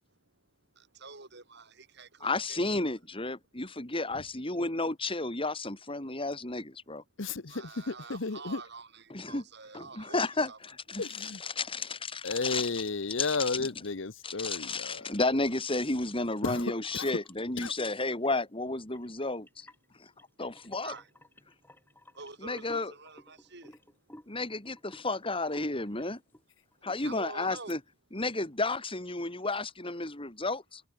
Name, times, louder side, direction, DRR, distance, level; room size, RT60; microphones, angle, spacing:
voice 1, 1.0-1.6 2.0-2.6 7.5-10.2 10.5-10.6 20.8-21.0 22.2-23.7 27.0-27.7, right 4 dB, 60° right, 7.8 m, -46 dB
voice 2, 2.2-7.0 9.1-9.4 9.7-12.8 13.2-13.7 14.2-19.7 20.0-20.1 20.4-20.9 22.4-22.9 24.3-26.2 26.8-27.8 28.1-30.8, left 2 dB, 25° left, 3.8 m, -32 dB
voice 3, 7.2-8.6 11.0-11.4 12.2-15.1 16.4-16.6 16.9-17.1 17.6-17.7 27.0-27.1, left 3 dB, 65° left, 1.0 m, -33 dB
sound 1, 16.5-17.3 18.0-18.4 18.9-26.4 26.7-27.1 27.4-27.7, left 1 dB, 10° left, 7.2 m, -55 dB
head